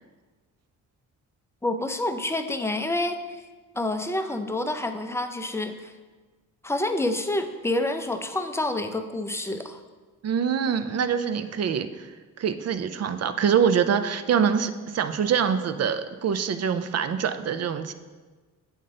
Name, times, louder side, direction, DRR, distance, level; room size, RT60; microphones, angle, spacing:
voice 1, 1.6-3.4 3.7-5.9 6.6-9.8, left 2 dB, 10° left, 7 dB, 0.5 m, -28 dB
voice 2, 10.2-12.1 12.4-17.9, right 7 dB, 45° right, 11 dB, 0.5 m, -25 dB
7.8 x 3.9 x 3.7 m, 1.3 s
supercardioid pair, 65°, 36 cm